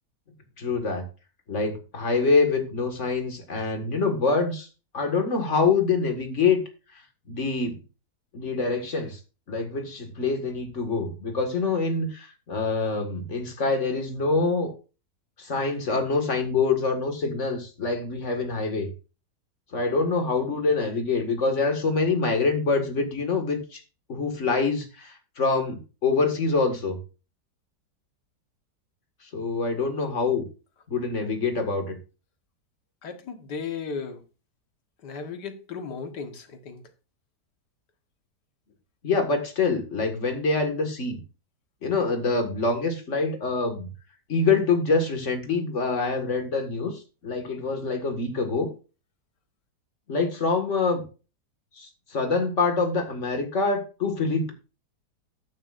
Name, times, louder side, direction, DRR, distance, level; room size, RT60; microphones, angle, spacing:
voice 1, 0.6-1.0 1.5-4.7 4.9-6.6 7.3-7.7 8.3-9.2 9.5-14.7 15.4-18.9 19.7-23.8 24.1-27.0 29.3-30.5 30.9-32.0 39.0-41.2 41.8-43.9 44.3-48.7 50.1-51.0 51.8-54.5, left 4 dB, 45° left, 2.1 m, -25 dB
voice 2, 33.0-34.2 35.0-36.8, left 5 dB, 75° left, 1.9 m, -35 dB
13.0 x 9.6 x 2.5 m
omnidirectional pair, 1.8 m